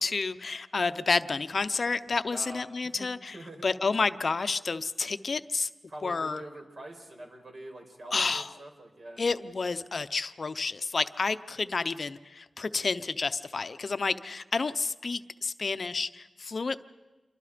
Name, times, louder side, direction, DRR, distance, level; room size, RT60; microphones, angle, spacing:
voice 1, 0.0-3.4 3.6-5.7 6.0-6.4 8.1-8.5 9.2-16.8, left 4 dB, 50° left, 11 dB, 0.7 m, -30 dB
voice 2, 2.3-3.1 3.3-3.7 5.9-9.2, right 1 dB, 55° right, 2 dB, 5.0 m, -45 dB
28.5 x 24.5 x 5.1 m, 1.2 s
wide cardioid pair, 100°, 0 cm